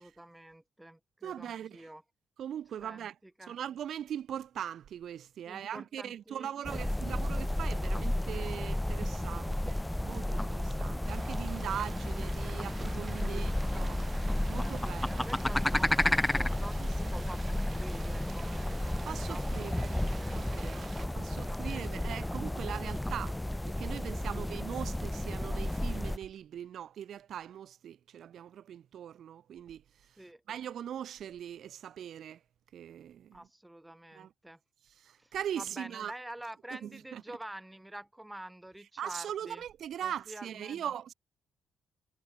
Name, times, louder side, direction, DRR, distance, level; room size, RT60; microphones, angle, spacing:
voice 1, 0.0-2.0 2.8-3.6 5.5-7.0 13.2-13.5 14.6-20.7 21.0-22.2 24.3-24.5 30.2-30.4 33.3-34.6 35.2-39.6 40.0-40.9, right 1 dB, 10° right, 0.9 m, -48 dB
voice 2, 1.2-1.9 2.4-3.1 3.5-14.0 14.5-15.3 19.1-20.0 20.3-20.9 21.1-23.4 23.7-30.2 30.5-32.4 32.7-33.4 34.1-34.3 35.0-36.1 36.7-37.2 39.0-41.1, right 10 dB, 65° right, 0.4 m, -40 dB
sound 1, 6.6-26.2, left 1 dB, 5° left, 0.4 m, -32 dB
Frying (food), 11.1-21.1, right 6 dB, 45° right, 0.8 m, -51 dB
cardioid pair, 90°, 0 cm